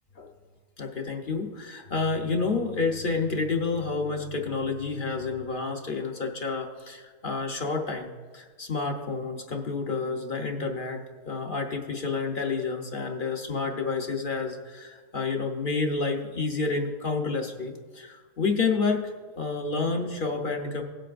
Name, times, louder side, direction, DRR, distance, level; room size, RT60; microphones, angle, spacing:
voice 1, 0.8-20.8, left 4 dB, 45° left, 2 dB, 0.9 m, -29 dB
17.5 x 7.7 x 2.5 m, 1.5 s
omnidirectional pair, 1.4 m